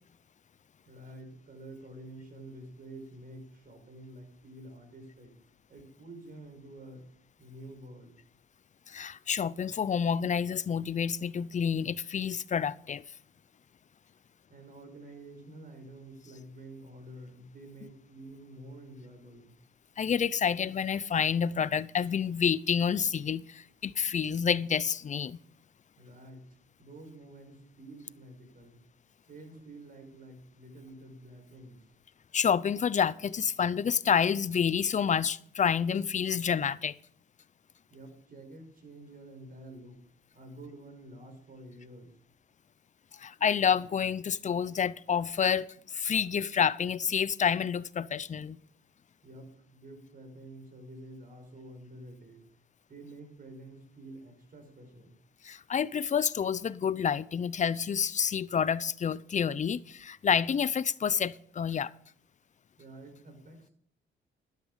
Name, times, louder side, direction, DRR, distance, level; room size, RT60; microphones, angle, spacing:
voice 1, 0.9-5.3 5.7-7.1 7.4-8.2 14.5-19.6 26.0-26.5 26.8-28.8 29.3-31.8 37.9-40.0 40.3-42.1 49.2-52.4 52.9-55.2 62.8-63.7, right 1 dB, 45° right, 5.4 m, -49 dB
voice 2, 8.9-13.0 20.0-25.4 32.3-37.0 43.1-48.6 55.4-61.9, left 7 dB, 40° left, 0.6 m, -28 dB
12.0 x 12.0 x 5.0 m
cardioid pair, 90°, 20 cm